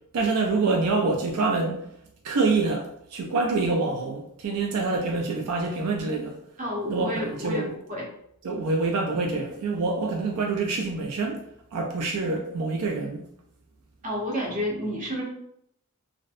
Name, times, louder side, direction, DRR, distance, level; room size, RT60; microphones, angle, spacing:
voice 1, 0.1-1.9 2.2-6.4 6.9-7.7 8.4-11.4 11.7-13.2, right 3 dB, 75° right, 0.4 m, -26 dB
voice 2, 6.6-8.1 14.0-15.2, equal, 35° right, 0.7 m, -30 dB
2.5 x 2.0 x 2.4 m
head